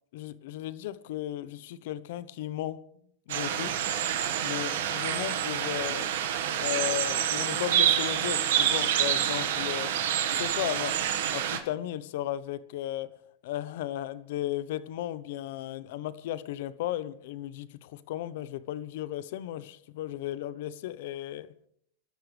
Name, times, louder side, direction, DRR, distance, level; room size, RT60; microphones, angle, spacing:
voice 1, 0.1-2.8 3.3-3.8 4.4-6.1 6.6-9.9 10.3-11.0 11.3-13.1 13.4-21.5, left 13 dB, 70° left, 0.9 m, -35 dB
sound 1, 3.3-11.6, right 10 dB, 80° right, 1.7 m, -27 dB
27.5 x 13.0 x 3.4 m
supercardioid pair, 130°, 0 cm